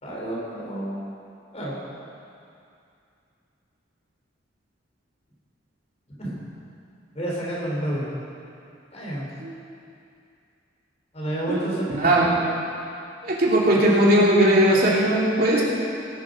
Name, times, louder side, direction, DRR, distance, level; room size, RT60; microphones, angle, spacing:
voice 1, 0.0-1.0 1.5-1.8 6.2-6.3 7.1-8.2 8.9-9.3 11.1-12.1, right 1 dB, 35° left, -4 dB, 3.8 m, -30 dB
voice 2, 11.5-12.4 13.2-15.6, right 1 dB, 50° right, -5 dB, 2.9 m, -19 dB
19.0 x 10.5 x 5.2 m, 2.5 s
head